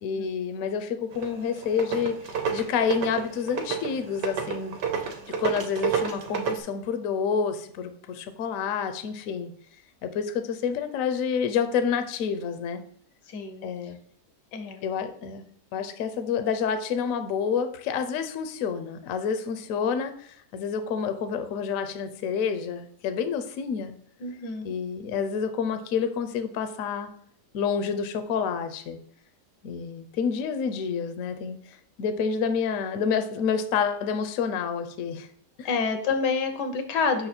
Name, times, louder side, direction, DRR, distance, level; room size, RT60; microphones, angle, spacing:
voice 1, 0.0-5.1 5.4-9.5 10.0-12.8 13.6-14.0 14.8-15.4 15.7-23.9 24.6-27.1 27.5-29.0 29.6-35.3 35.6-35.7, left 6 dB, 65° left, 9 dB, 0.9 m, -28 dB
sound 1, 1.1-6.6, right 6 dB, 90° right, 1.4 m, -30 dB
voice 2, 13.3-13.7 14.5-14.9 24.2-24.7 35.6-37.3, left 5 dB, 85° left, 7 dB, 1.5 m, -28 dB
5.6 x 4.0 x 4.3 m, 0.63 s
omnidirectional pair, 1.8 m